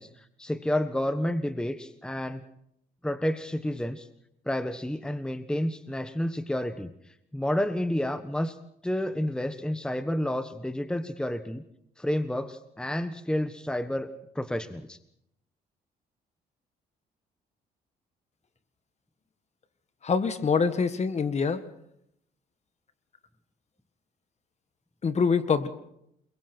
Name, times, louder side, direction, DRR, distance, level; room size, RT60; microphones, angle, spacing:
voice 1, 0.0-2.4 3.0-4.1 4.4-6.9 7.3-8.6 8.8-11.6 12.0-15.0, left 1 dB, 5° left, 11 dB, 1.2 m, -30 dB
voice 2, 20.0-21.6 25.0-25.7, left 5 dB, 40° left, 11 dB, 1.8 m, -25 dB
29.0 x 22.0 x 4.5 m, 0.75 s
cardioid pair, 90°, 17 cm